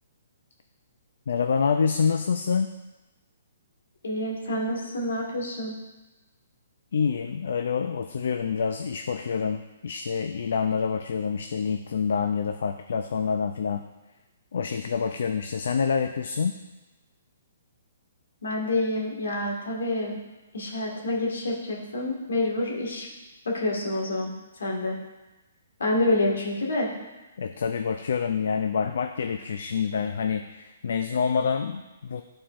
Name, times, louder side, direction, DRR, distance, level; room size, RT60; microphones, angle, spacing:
voice 1, 1.3-2.7 6.9-13.8 14.5-16.6 27.4-32.2, left 6 dB, 70° left, 6 dB, 0.4 m, -27 dB
voice 2, 4.0-5.8 18.4-20.2 20.5-23.1 23.5-25.0 25.8-26.9, left 1 dB, 85° left, -1 dB, 1.7 m, -27 dB
11.0 x 4.3 x 2.5 m, 1.1 s
hypercardioid pair, 155°, 0 cm